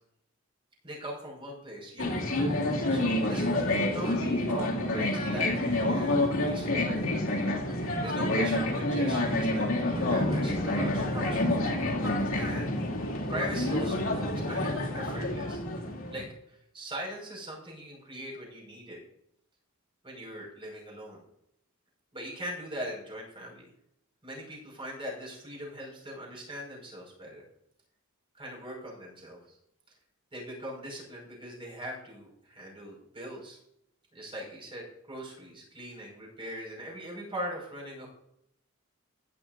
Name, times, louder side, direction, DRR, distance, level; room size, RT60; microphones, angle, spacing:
voice 1, 0.8-2.2 2.5-2.6 2.9-7.2 8.0-11.7 12.3-12.9 13.3-15.6 16.1-19.0 20.0-21.2 22.1-23.7 24.2-27.4 28.3-29.6 29.9-30.0 30.3-33.6 34.1-38.1, equal, 25° right, -2 dB, 5.4 m, -41 dB
sound 1, 2.0-16.2, left 1 dB, 75° left, 2.5 m, -28 dB
15.5 x 11.0 x 2.6 m, 0.77 s
head